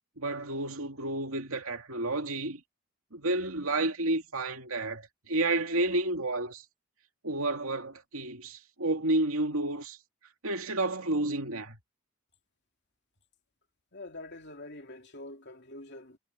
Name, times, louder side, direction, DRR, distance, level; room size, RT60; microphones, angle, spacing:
voice 1, 0.2-2.6 3.1-6.6 7.2-10.0 10.4-11.8, right 2 dB, 75° right, 2.5 m, -30 dB
voice 2, 13.9-16.2, left 2 dB, 50° left, 3.0 m, -45 dB
head